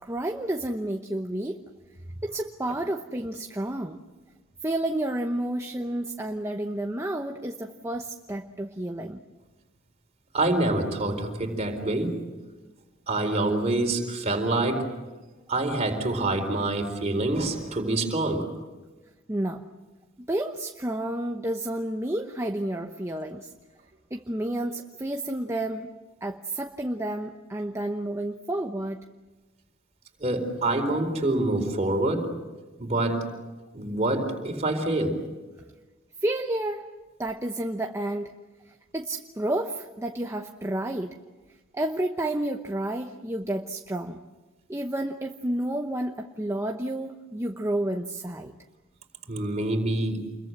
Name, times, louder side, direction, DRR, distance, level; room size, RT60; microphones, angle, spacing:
voice 1, 0.0-1.6 2.2-4.0 4.6-9.2 19.3-19.6 20.3-23.5 24.1-25.9 26.2-29.0 36.2-36.9 37.2-38.3 38.9-41.2 41.7-44.2 44.7-48.5, right 1 dB, 15° right, 4 dB, 0.9 m, -30 dB
voice 2, 10.3-12.1 13.1-14.9 15.5-18.5 30.2-32.3 32.8-33.3 33.7-35.2 49.3-50.2, right 2 dB, 35° right, 3 dB, 4.2 m, -26 dB
28.0 x 22.0 x 8.0 m, 1.2 s
head